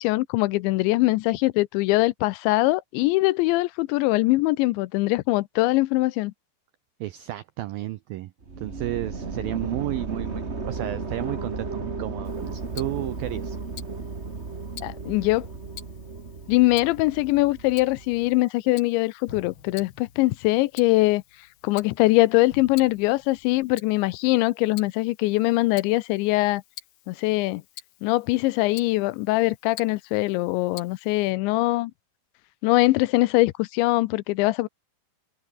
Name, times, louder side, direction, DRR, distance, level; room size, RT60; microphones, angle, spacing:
voice 1, 0.0-6.3 14.8-15.5 16.5-21.2 21.6-26.6 27.1-27.6 28.0-31.9 32.6-34.7, left 20 dB, 85° left, 2.9 m, -22 dB
voice 2, 7.0-8.3 8.6-13.6, right 15 dB, 90° right, 2.0 m, -32 dB
sound 1, 8.4-18.4, right 4 dB, 50° right, 0.8 m, -34 dB
Tick-tock, 12.2-31.3, left 13 dB, 65° left, 2.4 m, -49 dB
sound 2, 18.2-18.9 19.3-24.1, left 7 dB, 50° left, 1.6 m, -50 dB
omnidirectional pair, 5.3 m